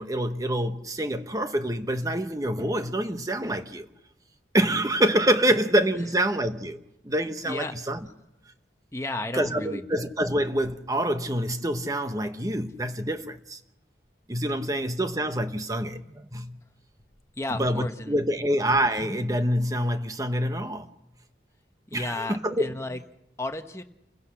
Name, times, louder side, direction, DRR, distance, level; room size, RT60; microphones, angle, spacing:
voice 1, 0.0-3.9 4.5-6.8 7.0-8.1 9.3-13.6 14.3-16.6 17.5-20.9 21.9-22.8, right 1 dB, 20° right, 1.0 m, -26 dB
voice 2, 8.9-9.9 17.4-18.1 21.9-23.0 23.4-23.8, left 2 dB, 15° left, 1.1 m, -33 dB
29.0 x 16.0 x 5.9 m
head